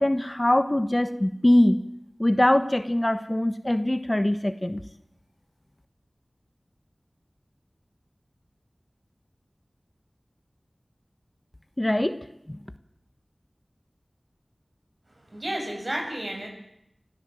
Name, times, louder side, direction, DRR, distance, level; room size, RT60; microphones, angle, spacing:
voice 1, 0.0-1.8 2.2-4.8 11.8-12.2 12.5-12.6, left 1 dB, 30° left, 10 dB, 1.2 m, -22 dB
voice 2, 15.3-16.5, right 1 dB, 50° right, 1 dB, 7.6 m, -31 dB
26.0 x 16.0 x 7.8 m, 0.81 s
wide cardioid pair, 45°, 0 cm